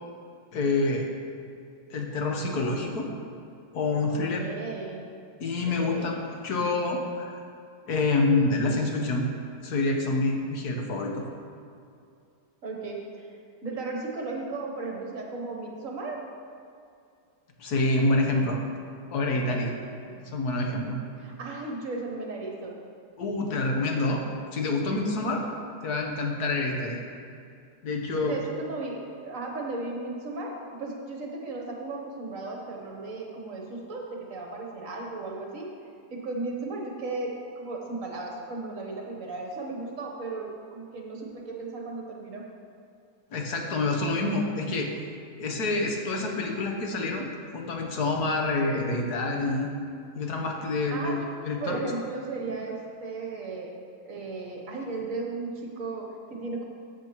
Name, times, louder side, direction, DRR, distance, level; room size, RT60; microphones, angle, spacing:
voice 1, 0.5-1.1 1.9-3.1 3.7-4.4 5.4-6.2 6.4-7.4 7.9-9.3 9.6-11.2 17.6-18.6 19.1-19.7 20.2-21.0 23.2-24.2 24.5-25.4 25.8-27.0 27.8-28.4 43.3-44.9 45.4-49.7 50.1-51.9, left 2 dB, 70° left, 1 dB, 1.5 m, -27 dB
voice 2, 4.1-5.0 5.7-6.1 12.6-13.3 13.6-16.2 19.7-20.3 21.2-22.8 28.2-35.7 36.1-42.5 49.9-50.0 50.9-51.2 51.6-53.8 54.0-56.6, right 3 dB, 55° right, -1 dB, 1.4 m, -35 dB
13.5 x 7.4 x 3.0 m, 2.4 s
omnidirectional pair, 1.8 m